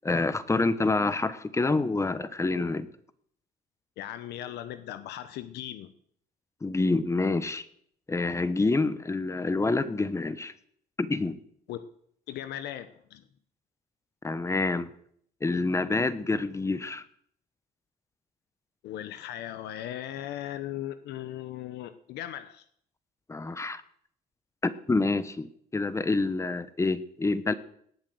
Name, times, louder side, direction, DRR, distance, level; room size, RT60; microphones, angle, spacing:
voice 1, 0.0-2.9 6.6-7.6 8.1-10.5 11.0-11.4 14.2-14.9 15.4-17.0 23.3-23.8 24.6-25.5 25.7-27.5, left 3 dB, 15° left, 15 dB, 1.1 m, -27 dB
voice 2, 4.0-5.9 11.7-11.8 12.3-13.2 18.8-22.6, left 12 dB, 80° left, 11 dB, 1.1 m, -38 dB
18.0 x 8.8 x 7.9 m, 0.66 s
cardioid pair, 110°, 17 cm